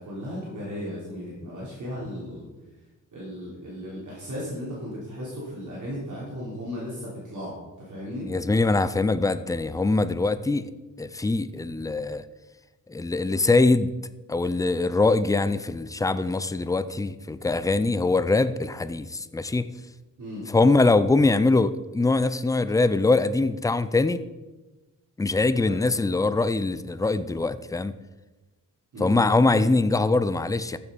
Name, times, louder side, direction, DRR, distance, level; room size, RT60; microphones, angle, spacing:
voice 1, 0.0-2.5 3.1-8.3 20.2-20.5 25.6-25.8 28.9-29.2, equal, 60° right, -6 dB, 3.5 m, -36 dB
voice 2, 8.3-10.7 11.0-12.2 12.9-13.9 14.3-19.7 20.5-24.2 25.2-27.9 29.0-30.8, left 3 dB, 10° left, 13 dB, 0.4 m, -23 dB
14.0 x 7.0 x 5.2 m, 1.1 s
wide cardioid pair, 140°, 33 cm